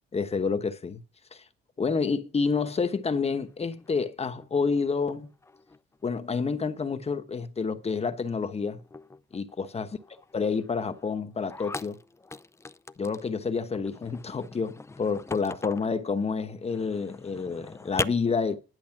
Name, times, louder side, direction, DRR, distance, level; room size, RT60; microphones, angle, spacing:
voice 1, 0.1-1.0 1.3-1.4 1.8-5.3 6.0-8.8 9.3-10.0 10.3-12.0 13.0-18.6, left 5 dB, 30° left, 1.1 m, -29 dB
sound 1, 3.1-4.5 4.8-6.2 6.5-7.0 7.3-7.6 7.9-8.0 8.3-8.4 8.8-13.3 13.7-16.0 16.6-18.1, left 3 dB, 15° left, 0.4 m, -41 dB
11.0 x 7.0 x 5.9 m
cardioid pair, 90°, 20 cm